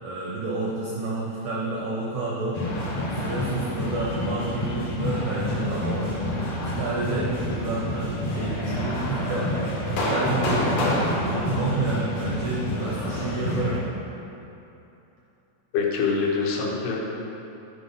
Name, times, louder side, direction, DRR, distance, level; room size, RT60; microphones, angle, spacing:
voice 1, 0.0-2.6 3.1-6.2 6.6-13.8, right 3 dB, 85° right, -4 dB, 1.5 m, -30 dB
sound 1, 2.5-13.8, left 1 dB, 65° left, 1.6 m, -28 dB
voice 2, 15.7-17.0, left 5 dB, 90° left, -1 dB, 2.9 m, -24 dB
8.9 x 4.2 x 5.5 m, 2.9 s
omnidirectional pair, 4.4 m